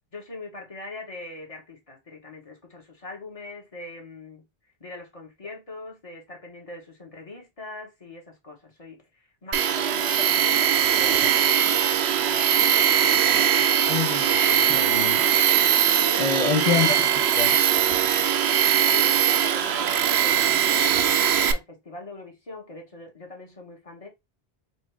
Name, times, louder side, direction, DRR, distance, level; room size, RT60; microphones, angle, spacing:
voice 1, 0.1-4.4 4.8-9.0 9.4-11.5 15.9-16.4 18.9-24.1, left 2 dB, 35° left, 1.4 m, -41 dB
Tools, 9.5-21.5, right 9 dB, 80° right, 0.8 m, -21 dB
voice 2, 13.9-15.3 16.2-17.1 17.4-17.6, left 7 dB, 50° left, 0.6 m, -26 dB
4.3 x 2.1 x 4.5 m
omnidirectional pair, 1.1 m